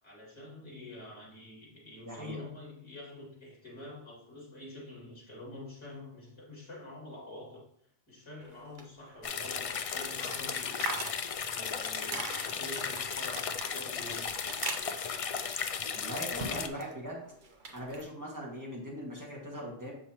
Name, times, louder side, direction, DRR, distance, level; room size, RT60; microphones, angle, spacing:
voice 1, 0.0-7.6 8.1-11.1 11.4-14.4, left 1 dB, 25° left, -4 dB, 2.5 m, -47 dB
voice 2, 2.1-2.4 16.0-17.2 17.7-19.9, equal, 15° right, -4 dB, 2.0 m, -40 dB
sound 1, 8.4-16.9 17.2-18.1, right 3 dB, 50° right, 0.9 m, -43 dB
sound 2, 9.2-16.7, left 6 dB, 55° left, 0.4 m, -35 dB
7.3 x 5.4 x 3.0 m, 0.70 s
omnidirectional pair, 1.1 m